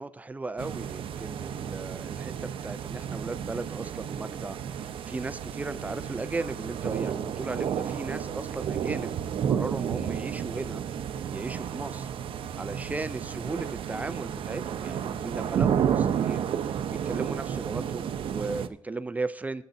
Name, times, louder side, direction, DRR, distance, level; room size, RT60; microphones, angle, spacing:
voice 1, 0.0-9.2 9.4-10.8 11.3-12.1 12.6-19.6, right 3 dB, 15° right, 12 dB, 0.4 m, -36 dB
sound 1, 0.6-18.7, right 8 dB, 85° right, 0.6 m, -32 dB
14.0 x 8.4 x 2.7 m, 0.65 s
wide cardioid pair, 175°, 9 cm